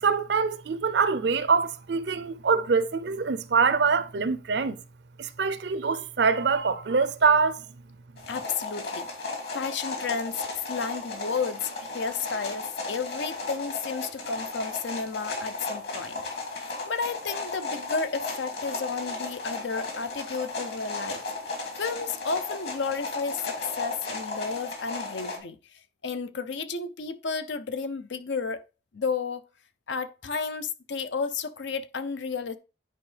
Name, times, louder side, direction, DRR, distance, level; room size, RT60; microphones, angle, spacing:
voice 1, 0.0-4.8 5.2-7.6, right 5 dB, 70° right, 0.5 m, -24 dB
sound 1, 8.2-25.4, left 3 dB, 60° left, 2.3 m, -35 dB
voice 2, 8.3-9.1 9.5-21.2 21.8-25.6 26.0-28.6 28.9-29.5 29.9-32.6, left 5 dB, 80° left, 0.6 m, -32 dB
9.8 x 4.5 x 3.3 m
head